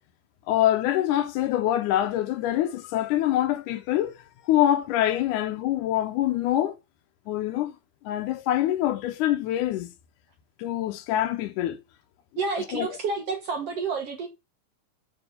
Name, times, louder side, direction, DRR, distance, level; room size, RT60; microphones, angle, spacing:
voice 1, 0.5-6.8 7.3-7.7 8.1-9.9 10.6-11.8 12.7-12.9, left 13 dB, 80° left, 2.1 m, -25 dB
voice 2, 12.4-14.3, right 4 dB, 60° right, 1.8 m, -29 dB
8.1 x 4.5 x 5.3 m
omnidirectional pair, 3.8 m